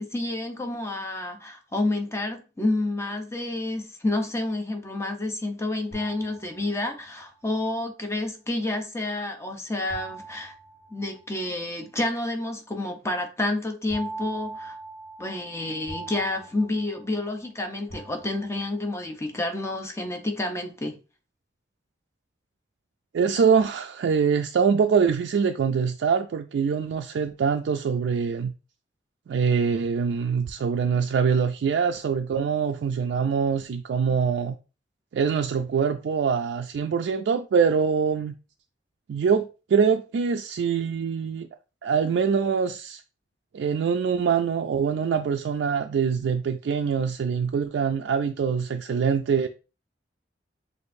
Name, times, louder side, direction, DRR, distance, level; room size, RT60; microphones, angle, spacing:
voice 1, 0.0-10.5 10.9-14.8 15.2-21.0, left 2 dB, 15° left, 0.7 m, -29 dB
sound 1, 5.9-7.1 9.9-11.5 13.9-17.5 17.9-18.8, right 2 dB, 60° left, 1.2 m, -41 dB
voice 2, 23.1-28.5 29.3-34.6 35.1-38.3 39.1-41.5 41.8-43.0 43.5-49.5, right 6 dB, 75° right, 0.3 m, -24 dB
6.2 x 2.5 x 2.6 m
head